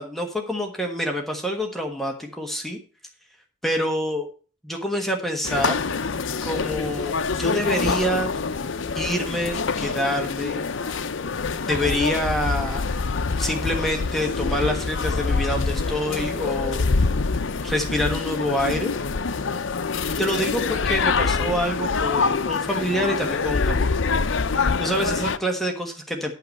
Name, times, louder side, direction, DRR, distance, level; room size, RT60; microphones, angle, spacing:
voice 1, 0.0-2.8 3.6-4.3 4.6-5.8 6.4-8.3 8.9-10.6 11.7-12.9 13.4-16.8 17.6-18.9 20.2-23.9 24.5-26.3, equal, ahead, 2 dB, 1.3 m, -26 dB
sound 1, 5.4-25.4, left 4 dB, 70° left, 0.6 m, -25 dB
11.0 x 5.7 x 6.5 m, 0.37 s
head